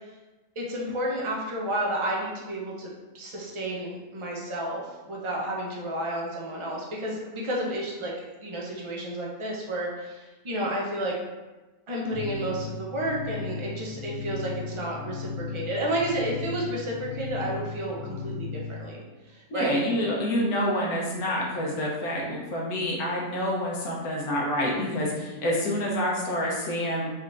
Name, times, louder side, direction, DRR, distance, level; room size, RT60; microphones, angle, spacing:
voice 1, 0.6-8.1 8.4-11.2 11.9-19.8, right 1 dB, 50° right, -3 dB, 0.3 m, -31 dB
sound 1, 12.1-18.9, left 5 dB, 65° left, 1.3 m, -36 dB
voice 2, 19.5-27.1, left 1 dB, 85° left, -3 dB, 1.3 m, -27 dB
4.2 x 3.4 x 2.5 m, 1.1 s
omnidirectional pair, 1.6 m